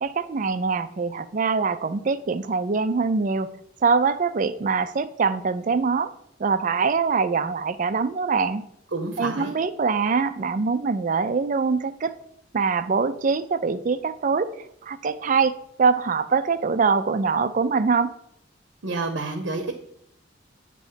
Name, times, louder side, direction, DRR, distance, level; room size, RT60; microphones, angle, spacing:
voice 1, 0.0-3.5 3.8-6.1 6.4-8.6 9.2-12.2 12.5-14.5 14.8-18.1, right 5 dB, 45° right, 13 dB, 0.4 m, -23 dB
voice 2, 8.9-9.6 18.8-19.7, right 3 dB, 85° right, 6 dB, 0.8 m, -29 dB
8.9 x 3.0 x 5.6 m, 0.73 s
head